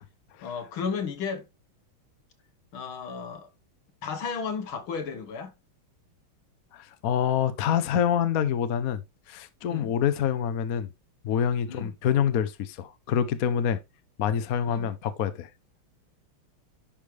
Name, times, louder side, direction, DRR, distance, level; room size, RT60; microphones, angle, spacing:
voice 1, 0.4-1.5 2.7-3.5 4.0-5.5 9.7-9.9 11.7-11.9 14.7-14.9, left 6 dB, 75° left, 2.0 m, -33 dB
voice 2, 6.7-9.0 9.3-10.9 11.2-13.8 14.2-15.5, left 8 dB, 60° left, 1.0 m, -26 dB
10.5 x 5.0 x 3.2 m
omnidirectional pair, 2.3 m